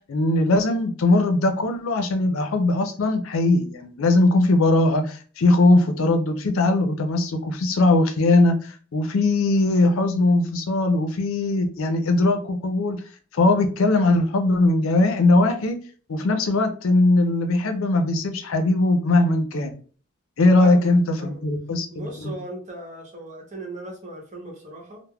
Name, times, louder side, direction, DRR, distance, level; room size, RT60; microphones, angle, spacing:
voice 1, 0.1-13.0 13.3-15.8 16.1-19.7 20.4-22.3, left 2 dB, 90° left, 6 dB, 0.5 m, -20 dB
voice 2, 20.6-21.4 21.9-25.0, right 1 dB, 35° right, 0 dB, 0.9 m, -38 dB
3.3 x 2.1 x 2.2 m, 0.40 s
head